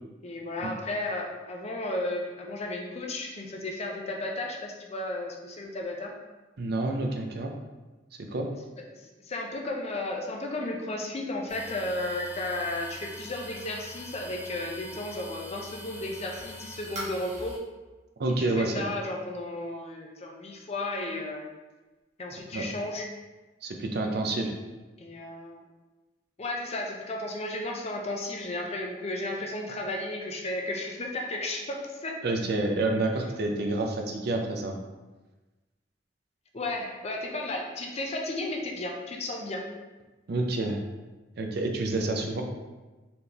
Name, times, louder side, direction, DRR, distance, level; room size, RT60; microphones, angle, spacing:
voice 1, 0.2-6.1 8.9-17.6 18.4-21.5 22.2-23.1 25.0-25.6 26.4-32.2 36.5-39.7, left 2 dB, 35° left, 0 dB, 0.6 m, -34 dB
voice 2, 6.6-7.5 8.2-8.5 18.2-18.8 22.5-22.6 23.6-24.5 32.2-34.8 40.3-40.8 41.4-42.4, right 2 dB, 60° right, 3 dB, 0.5 m, -28 dB
sound 1, 11.5-17.6, equal, 40° right, 1.2 m, -43 dB
4.2 x 3.4 x 2.8 m, 1.2 s
head